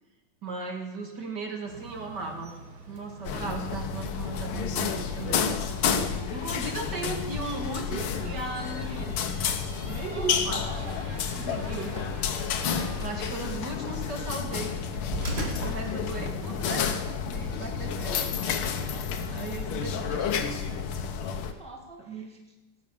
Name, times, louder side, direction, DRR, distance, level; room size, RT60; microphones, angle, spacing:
voice 1, 0.4-2.5 2.9-5.6 6.3-9.2 9.9-10.7 11.4-11.9 13.0-14.8 15.6-16.9 17.3-20.5 22.1-22.3, right 3 dB, 55° right, 3 dB, 2.2 m, -37 dB
sound 1, 1.6-6.8, right 4 dB, 75° right, 3.0 m, -49 dB
sound 2, 3.2-21.5, left 6 dB, 90° left, 1.9 m, -30 dB
sound 3, 7.9-16.6, right 1 dB, 30° right, 2.5 m, -41 dB
voice 2, 10.0-12.1 20.4-20.6 21.4-22.4, right 2 dB, 5° left, 1 dB, 1.7 m, -46 dB
17.0 x 9.4 x 6.9 m, 1.1 s
omnidirectional pair, 2.3 m